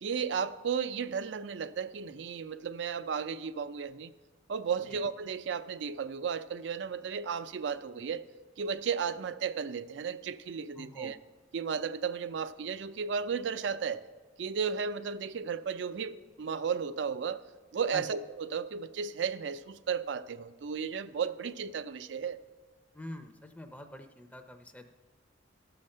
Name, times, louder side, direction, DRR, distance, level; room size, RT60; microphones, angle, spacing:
voice 1, 0.0-4.1 4.5-8.2 8.6-11.2 11.5-14.0 14.4-17.4 17.7-22.4, right 6 dB, 70° right, 14 dB, 0.4 m, -34 dB
voice 2, 10.8-11.2 17.9-18.0 22.9-24.9, left 1 dB, 10° left, 6 dB, 0.5 m, -45 dB
13.5 x 5.8 x 6.5 m, 1.3 s
head